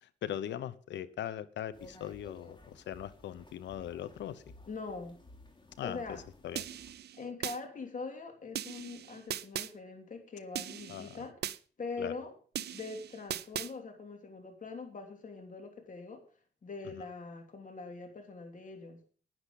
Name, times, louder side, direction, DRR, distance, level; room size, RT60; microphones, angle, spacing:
voice 1, 0.0-4.5 5.8-6.7 10.9-11.3 12.0-12.1 16.8-16.9, left 10 dB, 80° left, 16 dB, 1.0 m, -40 dB
sound 1, 1.7-6.9, left 1 dB, 25° left, 3.3 m, -56 dB
voice 2, 4.7-5.2 5.8-6.2 7.2-11.3 11.8-12.3 12.6-16.2 16.6-19.0, left 4 dB, 45° left, 4 dB, 3.1 m, -43 dB
sound 2, 6.6-7.6 8.5-9.7 10.5-11.6 12.5-13.7, right 11 dB, 65° right, 0.6 m, -39 dB
10.5 x 9.8 x 5.4 m, 0.41 s
cardioid pair, 75°, 18 cm